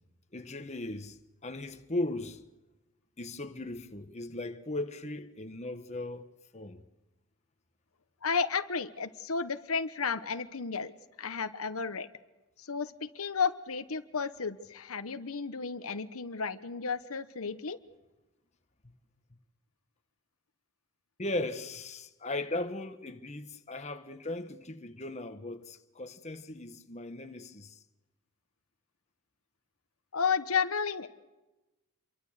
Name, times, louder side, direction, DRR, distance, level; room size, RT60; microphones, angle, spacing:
voice 1, 0.3-2.4 3.2-6.3 6.5-6.8 21.2-27.8, left 2 dB, 30° left, 1.4 m, -37 dB
voice 2, 8.2-10.9 11.2-12.1 12.6-17.8 30.1-31.1, left 5 dB, 90° left, 1.1 m, -32 dB
27.5 x 23.5 x 6.6 m
head